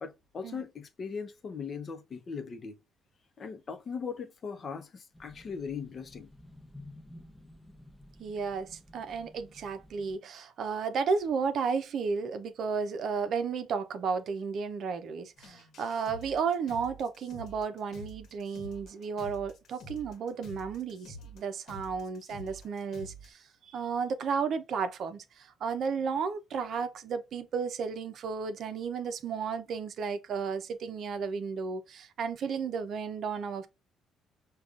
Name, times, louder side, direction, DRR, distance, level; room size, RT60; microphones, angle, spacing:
voice 1, 0.0-2.8 3.4-6.3, left 5 dB, 45° left, 0.6 m, -39 dB
sound 1, 5.1-10.2, left 1 dB, 10° left, 0.8 m, -53 dB
voice 2, 8.2-33.7, right 5 dB, 60° right, 0.5 m, -33 dB
sound 2, 15.4-23.3, equal, 70° left, 1.0 m, -48 dB
5.0 x 2.3 x 2.4 m
cardioid pair, 90°, 0 cm